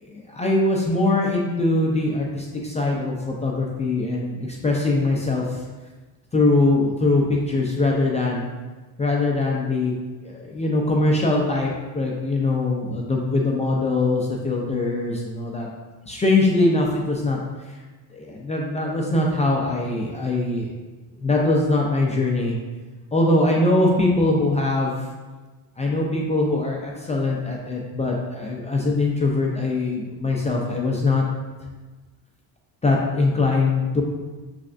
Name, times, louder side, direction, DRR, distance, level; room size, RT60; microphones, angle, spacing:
voice 1, 0.0-5.6 6.3-8.5 9.0-9.9 10.2-15.7 16.1-17.8 18.1-20.7 21.2-22.6 23.1-25.0 25.8-31.2 32.8-34.0, left 2 dB, 15° left, -2 dB, 0.4 m, -22 dB
5.9 x 3.3 x 2.5 m, 1.3 s
cardioid pair, 145°, 42 cm